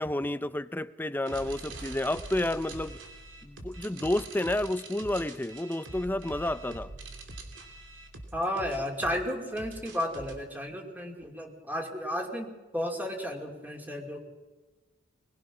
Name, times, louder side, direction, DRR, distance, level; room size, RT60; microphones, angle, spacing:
voice 1, 0.0-3.0 3.4-6.9, left 1 dB, 10° left, 0.6 m, -30 dB
sound 1, 1.3-10.3, right 2 dB, 90° right, 3.2 m, -44 dB
voice 2, 8.3-14.2, equal, 10° right, 2.8 m, -33 dB
22.0 x 20.5 x 6.1 m
head